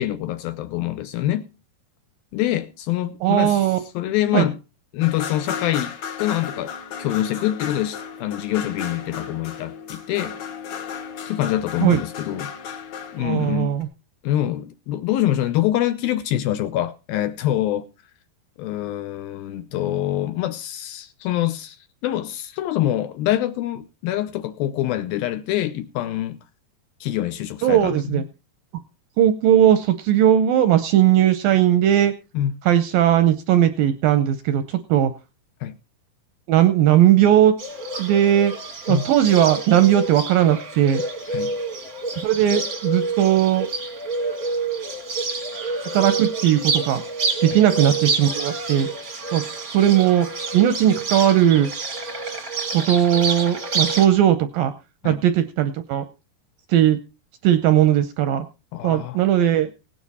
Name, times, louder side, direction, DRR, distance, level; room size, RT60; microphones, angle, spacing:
voice 1, 0.0-1.5 2.3-3.7 3.9-4.6 4.9-5.9 6.2-6.7 7.0-10.4 11.3-12.5 13.1-13.8 14.2-17.9 18.6-21.8 22.0-26.4 27.0-28.2 32.3-32.5 35.6-35.8 38.9-39.1 41.3-41.6 47.5-47.6 55.0-55.2 58.7-59.2, left 13 dB, 75° left, 2.3 m, -25 dB
voice 2, 3.2-3.8 4.3-4.5 11.8-12.0 13.2-13.9 27.6-28.2 29.2-32.1 32.7-35.1 36.5-37.5 38.0-38.5 38.9-41.0 42.2-43.7 45.9-47.0 47.4-48.9 49.3-49.4 49.7-50.3 50.5-51.7 52.7-54.7 55.0-56.1 56.7-57.0 57.4-58.5 58.8-59.7, right 11 dB, 75° right, 2.1 m, -18 dB
sound 1, 5.0-13.8, left 7 dB, 60° left, 2.1 m, -34 dB
Bird, 37.6-54.1, right 3 dB, 45° right, 1.1 m, -28 dB
17.5 x 9.5 x 4.1 m
omnidirectional pair, 4.8 m